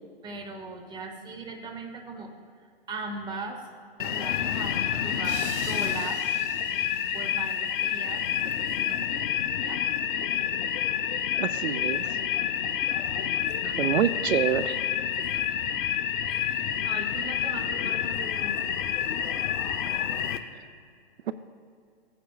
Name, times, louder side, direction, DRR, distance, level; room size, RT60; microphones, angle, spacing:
voice 1, 0.2-2.3 2.6-3.6 4.0-6.2 7.1-9.9 13.6-14.0 15.2-15.4 16.2-18.7, right 3 dB, 15° right, 4 dB, 1.0 m, -40 dB
sound 1, 4.0-20.4, left 9 dB, 50° left, 0.7 m, -28 dB
sound 2, 5.2-8.6, right 6 dB, 45° right, 1.5 m, -45 dB
voice 2, 11.4-12.2 13.6-14.8 19.9-20.0 21.3-21.4, right 9 dB, 80° right, 13 dB, 0.5 m, -27 dB
16.5 x 9.3 x 2.3 m, 2.2 s
hypercardioid pair, 130°, 32 cm